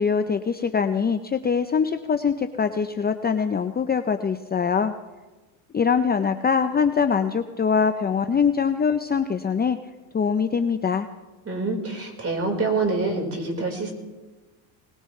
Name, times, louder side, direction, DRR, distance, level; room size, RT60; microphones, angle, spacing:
voice 1, 0.0-4.9 5.7-9.8 10.1-11.1, left 6 dB, 20° left, 9 dB, 0.6 m, -23 dB
voice 2, 11.5-13.9, right 3 dB, 30° right, 2 dB, 4.6 m, -26 dB
21.0 x 20.0 x 3.3 m, 1.2 s
supercardioid pair, 95°, 49 cm